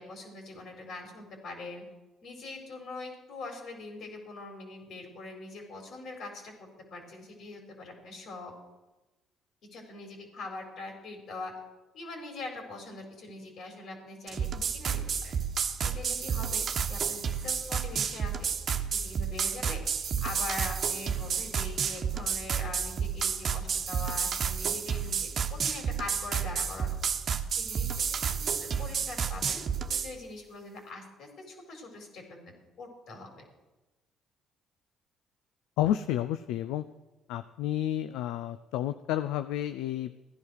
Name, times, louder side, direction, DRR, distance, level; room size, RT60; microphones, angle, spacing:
voice 1, 0.0-1.8 2.2-8.5 9.7-11.5 11.9-15.4 15.8-18.5 19.0-19.8 20.2-27.0 27.6-27.9 28.3-33.4, left 2 dB, 65° left, 3 dB, 4.5 m, -43 dB
sound 1, 14.3-30.1, right 7 dB, 55° right, 1.1 m, -31 dB
voice 2, 35.8-36.8 37.3-40.1, left 12 dB, 85° left, 12 dB, 0.5 m, -30 dB
15.5 x 11.0 x 6.5 m, 1.1 s
supercardioid pair, 65°, 0 cm